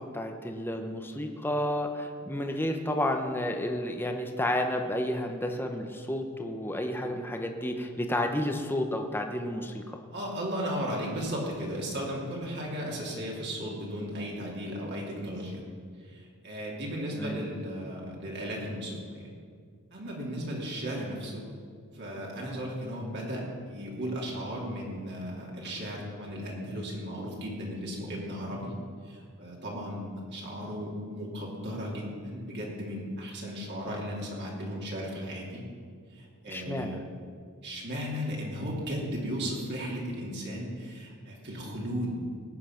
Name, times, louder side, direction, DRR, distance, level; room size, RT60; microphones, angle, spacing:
voice 1, 0.0-9.8 17.2-17.4 36.5-37.0, left 1 dB, 10° left, 4 dB, 0.9 m, -31 dB
voice 2, 10.1-15.6 16.0-19.3 19.9-21.4 21.9-28.7 29.0-35.6 36.1-37.0 37.6-42.2, equal, 50° right, -3 dB, 2.9 m, -35 dB
19.0 x 8.7 x 5.9 m, 2.1 s
head